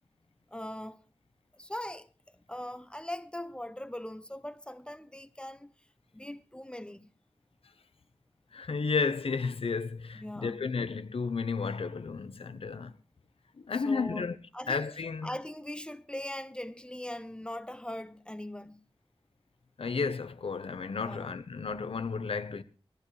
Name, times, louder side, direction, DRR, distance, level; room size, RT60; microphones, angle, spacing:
voice 1, 0.5-1.0 1.5-2.1 2.3-5.7 6.1-7.1 10.1-10.6 13.7-14.9 15.2-18.8 21.0-21.3, left 1 dB, 10° left, 0.8 m, -40 dB
voice 2, 8.5-12.9 13.6-14.4 14.7-15.3 19.8-22.6, left 4 dB, 75° left, 1.1 m, -32 dB
20.0 x 14.5 x 3.3 m
wide cardioid pair, 85°, 10 cm